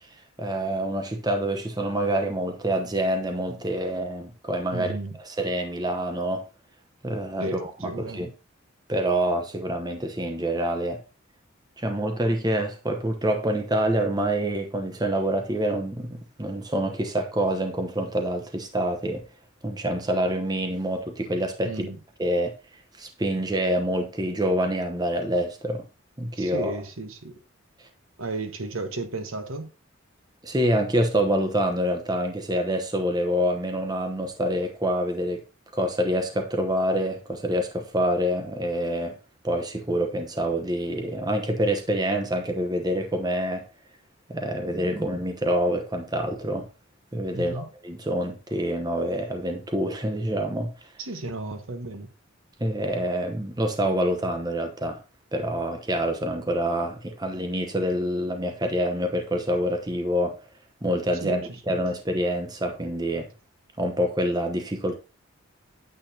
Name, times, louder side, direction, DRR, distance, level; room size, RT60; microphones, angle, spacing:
voice 1, 0.4-6.4 7.0-8.3 8.9-11.0 11.8-19.2 19.6-21.8 22.2-22.5 23.0-25.8 26.2-26.8 30.4-35.4 35.7-39.2 39.4-43.7 44.3-46.7 47.1-50.7 52.6-55.0 55.3-60.4 60.8-63.3 63.8-64.9, right 1 dB, 20° right, 0.9 m, -26 dB
voice 2, 4.7-5.2 7.4-8.3 21.6-22.0 26.4-27.4 28.2-29.7 47.3-47.7 51.0-52.1 61.2-61.4 61.7-61.8, right 2 dB, 75° right, 1.2 m, -34 dB
9.0 x 8.2 x 2.8 m
head